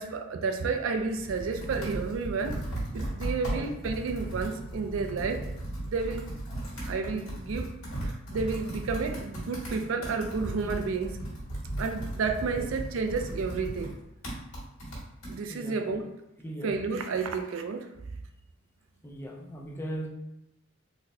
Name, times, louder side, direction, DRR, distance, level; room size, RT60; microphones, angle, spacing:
voice 1, 0.0-2.6 2.9-5.5 5.9-6.2 6.7-7.7 8.0-11.2 11.8-14.0 15.3-16.1 16.6-17.9, right 4 dB, 65° right, 6 dB, 0.3 m, -31 dB
Computer keyboard, 0.8-15.4, right 1 dB, 75° left, 1.4 m, -36 dB
voice 2, 12.6-12.9 15.5-16.0 16.4-16.8 19.0-20.1, right 1 dB, 10° left, 1 dB, 0.3 m, -39 dB
4.0 x 2.1 x 2.7 m, 0.89 s
head